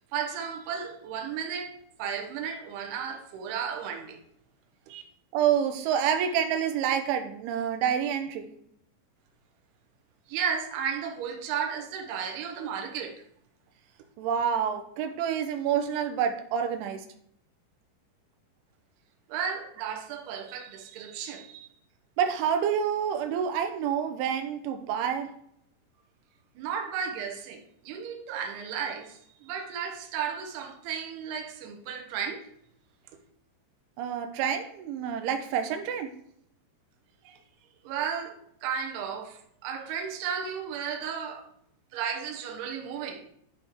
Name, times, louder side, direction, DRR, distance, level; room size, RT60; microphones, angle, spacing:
voice 1, 0.0-4.2 4.9-5.0 10.3-13.2 19.3-21.7 26.6-32.4 37.2-37.4 37.8-41.5 41.9-43.3, right 7 dB, 70° right, 3.0 m, -34 dB
voice 2, 5.3-8.5 14.2-17.0 22.2-25.3 34.0-36.1, right 8 dB, 85° right, 3.3 m, -28 dB
12.5 x 5.4 x 4.7 m
omnidirectional pair, 5.4 m